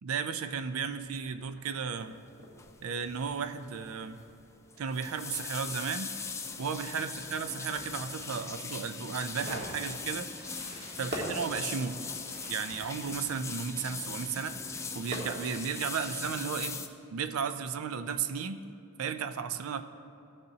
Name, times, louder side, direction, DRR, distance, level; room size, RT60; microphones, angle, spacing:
voice 1, 0.0-2.2 2.8-4.2 4.8-6.1 6.6-10.3 11.0-12.1 12.5-14.6 14.9-16.8 17.1-18.6 19.0-19.8, right 6 dB, 85° right, 10 dB, 0.4 m, -34 dB
Fireworks, 0.8-15.8, right 1 dB, 50° right, 1.6 m, -46 dB
sound 1, 2.6-2.8 3.1-3.4 3.7-3.8 4.7-16.9, left 5 dB, 15° left, 0.3 m, -40 dB
14.5 x 6.7 x 2.8 m, 2.6 s
head